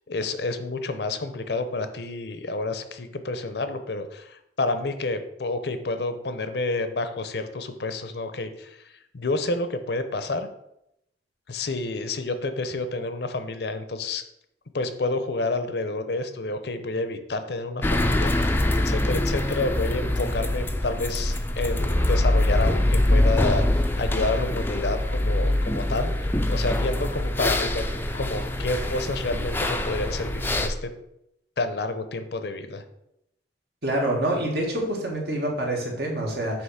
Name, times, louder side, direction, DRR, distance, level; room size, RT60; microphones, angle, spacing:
voice 1, 0.1-8.8 9.1-10.5 11.5-14.2 14.7-27.8 28.1-30.9 31.6-32.8, left 2 dB, 65° left, 9 dB, 0.7 m, -29 dB
sound 1, 17.8-30.7, left 1 dB, 10° left, 0.4 m, -24 dB
voice 2, 33.8-36.6, right 1 dB, 60° right, -1 dB, 1.8 m, -26 dB
8.0 x 3.0 x 5.7 m, 0.81 s
head